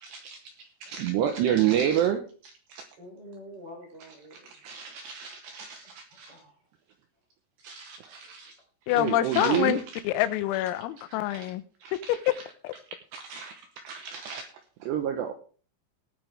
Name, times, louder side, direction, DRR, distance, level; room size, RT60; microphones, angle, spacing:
voice 1, 0.0-2.8 4.3-6.3 7.6-8.6 8.9-10.0 11.3-11.5 11.8-12.4 13.1-14.5 14.8-15.3, right 10 dB, 80° right, 6 dB, 2.5 m, -30 dB
voice 2, 3.0-4.6 5.8-5.9 6.3-6.6, equal, 25° right, 2 dB, 2.8 m, -47 dB
voice 3, 8.9-9.8 10.1-11.6 11.9-12.4 12.6-12.7, left 14 dB, 85° left, 13 dB, 3.5 m, -26 dB
18.5 x 9.1 x 3.4 m, 0.39 s
omnidirectional pair, 6.0 m